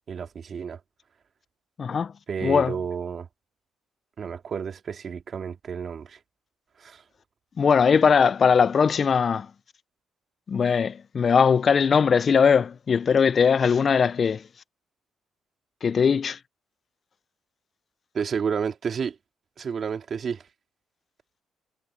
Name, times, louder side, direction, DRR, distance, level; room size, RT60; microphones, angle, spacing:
voice 1, 0.1-0.8 2.3-3.3 4.2-6.2 6.8-7.0 18.1-19.2 19.6-20.4, right 6 dB, 50° right, 2.2 m, -31 dB
voice 2, 1.8-2.1 2.4-2.8 7.6-9.5 10.5-14.4 15.8-16.4, left 6 dB, 45° left, 0.4 m, -20 dB
cardioid pair, 90°, 0 cm